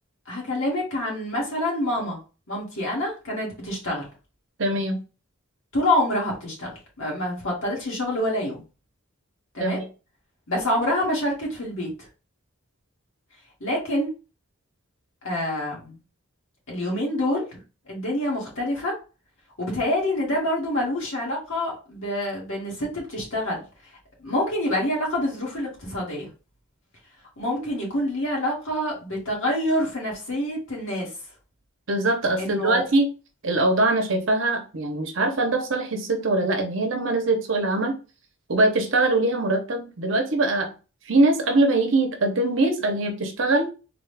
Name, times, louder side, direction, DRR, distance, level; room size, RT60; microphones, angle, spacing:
voice 1, 0.3-2.2 2.5-4.1 5.7-6.7 7.0-8.6 9.5-9.8 10.5-11.9 13.6-14.1 15.2-16.0 16.7-17.6 17.9-18.9 19.6-23.6 24.2-26.3 27.4-31.1 32.4-32.8, left 1 dB, 70° left, 1.8 m, -26 dB
voice 2, 4.6-5.0 9.6-9.9 31.9-33.1 33.4-38.0 38.5-40.7 41.1-43.7, right 2 dB, 60° right, 0.8 m, -22 dB
3.8 x 2.4 x 3.3 m
head